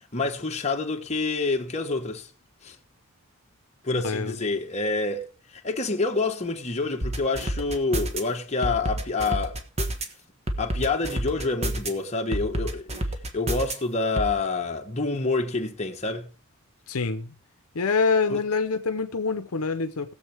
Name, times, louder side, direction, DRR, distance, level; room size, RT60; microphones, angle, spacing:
voice 1, 0.1-2.3 2.6-2.8 3.8-9.6 10.6-12.9 13.3-16.3 18.3-18.4, left 3 dB, 30° left, 1.3 m, -27 dB
voice 2, 3.9-4.4 16.9-17.3 17.7-20.1, left 4 dB, 70° left, 0.8 m, -26 dB
sound 1, 7.0-8.2 8.6-10.1 10.5-11.9 12.3-13.7 14.2-14.3, right 1 dB, 30° right, 1.3 m, -28 dB
20.0 x 7.2 x 3.4 m
head